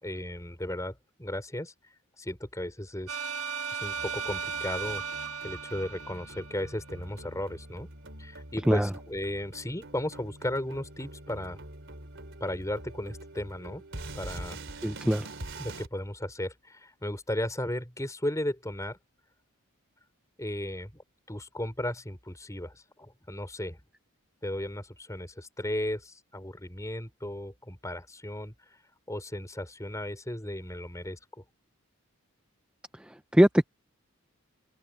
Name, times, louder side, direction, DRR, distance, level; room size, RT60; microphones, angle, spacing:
voice 1, 0.0-1.7 2.2-3.2 3.7-5.0 5.4-7.9 8.2-11.6 12.4-13.8 14.1-14.6 15.6-19.0 20.4-21.0 21.3-23.8 24.4-28.5 29.1-31.2, left 1 dB, 15° left, 4.6 m, -35 dB
sound 1, 3.1-7.0, right 6 dB, 85° right, 1.1 m, -36 dB
sound 2, 4.0-15.9, right 2 dB, 55° right, 4.3 m, -45 dB
voice 2, 14.8-15.3 32.9-33.7, equal, 5° right, 0.5 m, -23 dB
open air
head